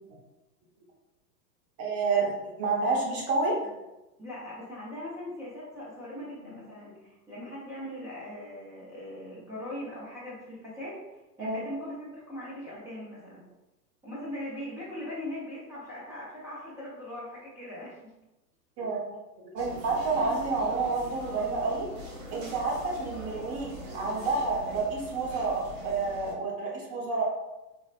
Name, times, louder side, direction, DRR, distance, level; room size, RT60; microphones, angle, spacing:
voice 1, 1.8-3.6 11.4-11.6 18.8-19.2 19.5-21.9 22.3-27.3, right 3 dB, 30° right, -2 dB, 0.9 m, -29 dB
voice 2, 4.2-13.4 14.0-18.1, left 1 dB, 10° right, -8 dB, 0.4 m, -40 dB
sound 1, 19.6-26.3, left 1 dB, 55° right, 1.1 m, -43 dB
4.1 x 2.1 x 2.4 m, 1.0 s
hypercardioid pair, 115°, 48 cm